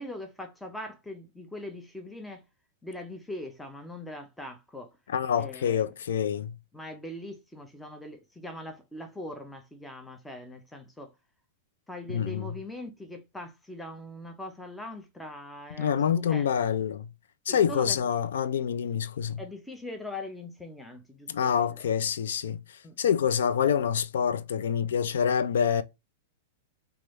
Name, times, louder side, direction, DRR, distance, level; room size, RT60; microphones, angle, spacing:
voice 1, 0.0-2.4 2.8-5.0 5.4-5.9 6.7-11.1 11.9-16.6 17.5-18.0 19.4-21.8 22.8-23.0, left 1 dB, 5° left, 0.4 m, -41 dB
voice 2, 5.1-6.6 12.1-12.5 15.8-17.1 17.5-19.4 21.3-22.6 23.0-25.8, left 8 dB, 85° left, 0.3 m, -26 dB
3.3 x 2.2 x 3.0 m
supercardioid pair, 180°, 0 cm